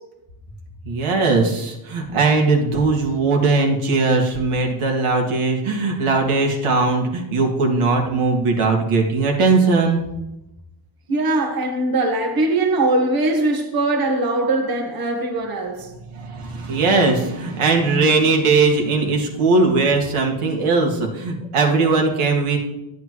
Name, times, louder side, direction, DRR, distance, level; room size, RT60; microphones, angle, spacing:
voice 1, 0.9-10.0 16.1-22.6, right 3 dB, 75° right, 2.1 m, -19 dB
voice 2, 11.1-15.9, right 2 dB, 45° right, 1.7 m, -21 dB
10.5 x 8.3 x 3.1 m
cardioid pair, 75°, 50 cm